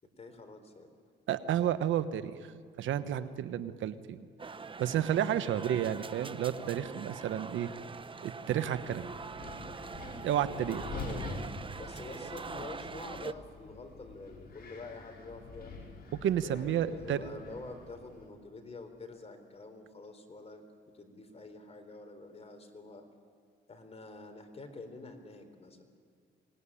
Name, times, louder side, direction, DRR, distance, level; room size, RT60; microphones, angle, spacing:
voice 1, 0.2-0.9 3.2-3.6 9.7-10.0 10.7-15.7 16.4-20.6 20.9-23.1 23.7-25.8, left 3 dB, 30° left, 6 dB, 4.0 m, -47 dB
voice 2, 1.3-2.4 2.8-4.3 4.8-7.7 8.2-9.1 10.2-10.8 16.1-17.2, right 10 dB, 75° right, 12 dB, 1.1 m, -31 dB
sound 1, 4.4-13.3, right 4 dB, 25° right, 0.8 m, -43 dB
Wind, 8.7-18.3, left 2 dB, 50° left, 6.0 m, -46 dB
25.0 x 20.0 x 10.0 m, 2.1 s
cardioid pair, 90°, 20 cm